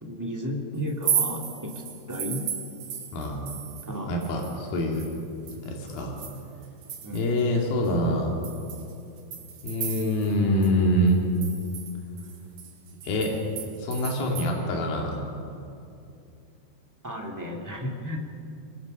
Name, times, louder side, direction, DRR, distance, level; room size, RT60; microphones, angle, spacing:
voice 1, 0.0-1.7 2.1-2.4 3.8-4.2 7.0-7.2 17.0-18.2, equal, 5° right, 0 dB, 1.5 m, -33 dB
sound 1, 0.9-3.9 4.2-7.4 7.8-7.9 8.4-10.4 10.6-10.7 11.1-14.5, right 8 dB, 60° right, 3.1 m, -34 dB
voice 2, 3.1-3.5 4.1-5.1 5.6-6.2 7.1-8.3 9.6-11.3 13.0-13.4 13.8-15.3, equal, 70° left, 0 dB, 4.2 m, -25 dB
25.0 x 22.0 x 5.4 m, 2.6 s
omnidirectional pair, 4.3 m